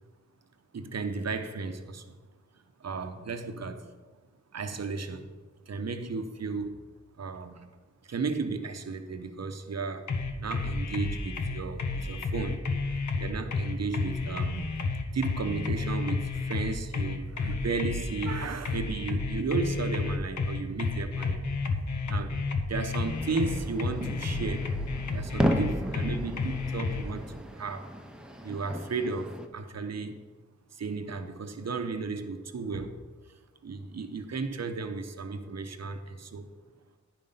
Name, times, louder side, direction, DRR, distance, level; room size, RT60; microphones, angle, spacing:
voice 1, 0.7-2.1 2.8-3.9 4.5-5.3 5.7-6.8 7.2-7.7 8.0-10.1 10.4-12.6 12.9-14.7 15.1-21.4 22.1-22.3 22.7-24.7 25.1-27.9 28.4-30.2 30.7-33.0 33.6-36.5, right 4 dB, 60° right, 7 dB, 0.8 m, -34 dB
sound 1, 10.1-27.0, left 4 dB, 75° left, 0.9 m, -31 dB
sound 2, 23.0-29.5, equal, 5° right, 0.7 m, -34 dB
10.5 x 5.3 x 5.6 m, 1.3 s
wide cardioid pair, 85°, 30 cm